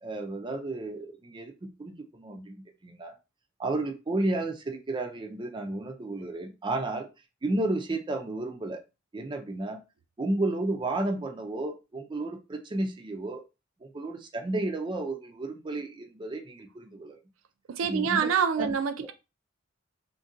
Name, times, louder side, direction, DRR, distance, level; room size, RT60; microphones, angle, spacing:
voice 1, 0.0-3.2 3.6-7.1 7.4-8.8 9.1-9.8 10.2-13.4 13.8-17.2 17.8-18.3 18.6-18.7, right 2 dB, 25° right, 0.4 m, -32 dB
voice 2, 17.7-19.1, right 7 dB, 85° right, 0.4 m, -26 dB
2.6 x 2.2 x 3.7 m
head